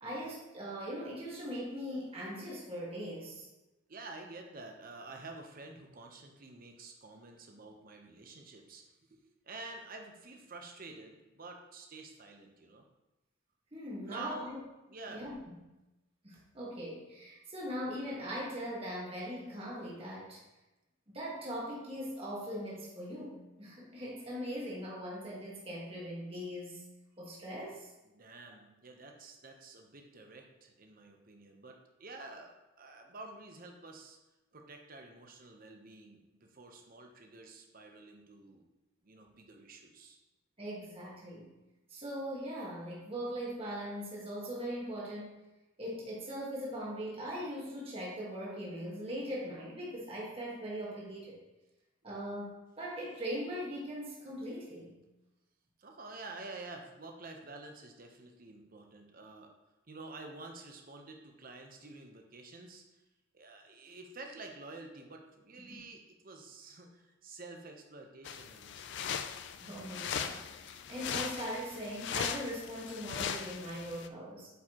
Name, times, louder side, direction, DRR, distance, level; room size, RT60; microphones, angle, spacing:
voice 1, 0.0-3.5 13.7-14.6 15.1-15.4 16.2-20.4 21.1-26.8 27.2-27.9 40.6-41.5 41.9-45.4 45.8-51.4 52.0-55.0 65.7-65.8 69.6-74.5, equal, 30° right, -5 dB, 1.4 m, -40 dB
voice 2, 3.9-8.8 9.1-12.8 14.0-14.6 14.9-15.3 28.0-34.2 34.5-38.6 39.0-40.2 55.8-59.5 59.9-62.8 63.3-69.1, right 3 dB, 45° right, 3 dB, 0.8 m, -49 dB
sound 1, 68.2-74.1, left 8 dB, 60° left, 0.3 m, -39 dB
8.2 x 4.7 x 2.9 m, 1.0 s
head